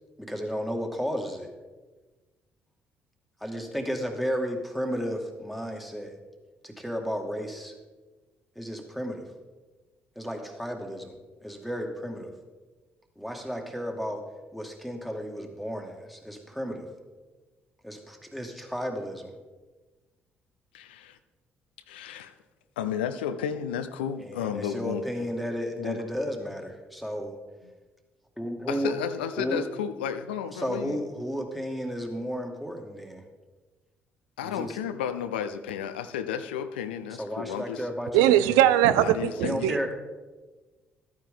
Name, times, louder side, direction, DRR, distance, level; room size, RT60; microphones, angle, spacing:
voice 1, 0.2-1.5 3.4-6.1 6.6-7.7 8.6-9.3 10.2-11.1 11.4-12.3 13.2-14.2 14.5-16.9 17.8-19.3 24.2-27.4 28.4-28.9 29.4-29.6 30.5-33.2 34.4-34.8 37.2-38.6 39.4-39.9, equal, ahead, 2.1 m, -33 dB
voice 2, 20.7-21.2 21.9-22.3 22.8-25.3 25.8-26.1 28.7-31.0 34.4-37.9 39.0-39.7, left 8 dB, 80° left, 0.5 m, -33 dB
voice 3, 38.1-39.9, right 12 dB, 75° right, 0.4 m, -21 dB
13.0 x 9.4 x 3.7 m
hypercardioid pair, 45°, 5 cm